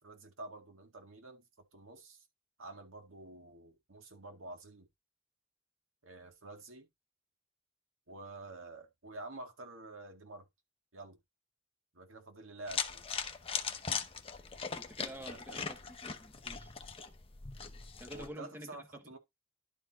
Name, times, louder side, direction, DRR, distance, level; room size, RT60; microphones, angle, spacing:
voice 1, 0.0-2.3 2.6-4.9 6.0-6.9 8.1-10.5 10.9-11.2 11.9-13.0 15.2-15.6 18.1-19.2, right 2 dB, 85° right, 2.0 m, -49 dB
sound 1, 12.7-18.3, left 6 dB, 30° left, 0.9 m, -40 dB
voice 2, 14.7-16.7 18.0-19.2, equal, 10° right, 1.3 m, -49 dB
11.5 x 4.4 x 4.2 m
head